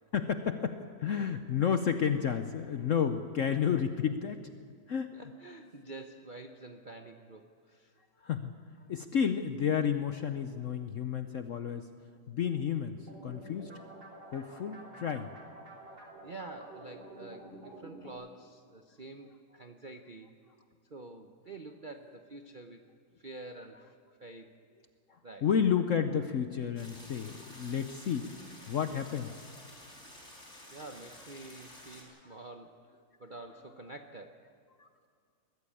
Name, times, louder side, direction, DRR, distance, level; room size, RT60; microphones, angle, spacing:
voice 1, 0.1-4.4 4.9-5.2 8.2-8.5 8.9-11.9 12.3-13.7 14.3-15.3 25.1-28.3 28.7-29.5 34.8-34.9, left 7 dB, 60° left, 8 dB, 0.8 m, -31 dB
voice 2, 5.1-7.9 16.2-20.4 20.9-22.8 23.2-23.9 24.2-24.6 25.2-25.5 30.7-34.4, right 2 dB, 50° right, 5 dB, 0.5 m, -48 dB
sound 1, 13.0-18.1, right 1 dB, 70° right, 4.0 m, -49 dB
sound 2, 26.8-32.0, left 1 dB, 35° left, 4.9 m, -51 dB
21.5 x 14.5 x 8.6 m, 2.2 s
omnidirectional pair, 2.1 m